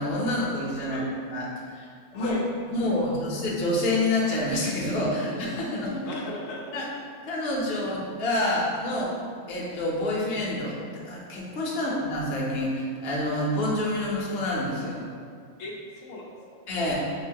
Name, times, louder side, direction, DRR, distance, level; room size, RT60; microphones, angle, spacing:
voice 1, 0.0-1.0 1.3-1.8 2.1-2.3 2.7-6.1 6.7-6.9 7.2-9.1 9.5-10.8 11.0-15.1 16.7-16.9, left 1 dB, 55° left, -4 dB, 1.0 m, -27 dB
voice 2, 0.8-1.1 1.8-1.9 2.1-2.5 2.7-3.2 6.1-6.8 11.8-12.0 15.6-16.6, left 2 dB, 85° left, -2 dB, 1.0 m, -39 dB
5.9 x 2.7 x 2.8 m, 2.1 s
omnidirectional pair, 1.3 m